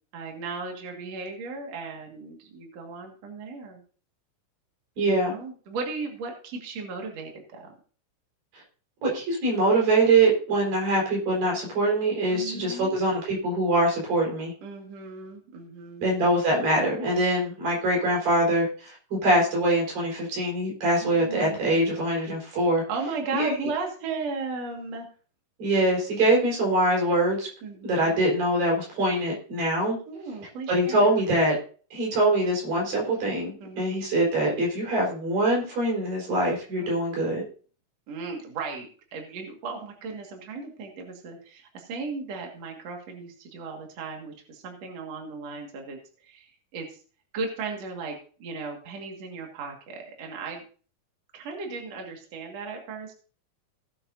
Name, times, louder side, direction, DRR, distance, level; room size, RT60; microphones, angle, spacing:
voice 1, 0.1-3.8 5.0-7.7 12.3-12.9 14.6-16.1 21.0-22.1 22.9-25.1 27.6-28.2 30.1-31.1 33.6-34.0 36.8-37.3 38.1-47.0 47.3-50.6 51.3-53.1, right 4 dB, 55° right, 1 dB, 2.8 m, -36 dB
voice 2, 5.0-5.3 9.0-14.5 16.0-22.8 23.3-23.5 25.6-27.5 27.8-30.0 30.7-31.6 31.9-37.4, right 1 dB, 85° right, -2 dB, 6.2 m, -23 dB
18.0 x 8.6 x 2.7 m, 0.41 s
omnidirectional pair, 3.9 m